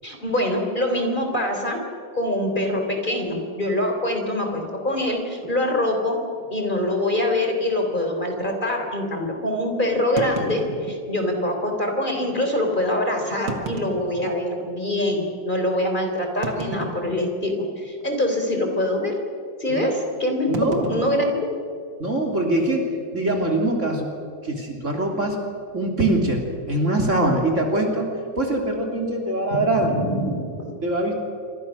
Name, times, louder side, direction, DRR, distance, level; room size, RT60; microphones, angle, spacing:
voice 1, 0.0-1.8 2.1-6.2 6.5-19.2 19.6-21.5 29.8-30.7, left 1 dB, 25° left, 3 dB, 3.6 m, -24 dB
sound 1, 5.4-5.6 6.3-6.5 6.8-6.9 7.5-7.6 10.2-11.4 12.2-12.3 13.3-14.7 15.3-15.4 16.4-17.5 17.8-18.2 18.4-18.7 20.5-22.2, right 3 dB, 80° right, 2.8 m, -34 dB
voice 2, 20.5-20.9 22.0-24.2 24.4-25.4 25.7-28.1 28.4-29.9 30.8-31.1, right 1 dB, 40° right, 1 dB, 3.5 m, -23 dB
27.5 x 25.5 x 6.4 m, 2.3 s
omnidirectional pair, 2.0 m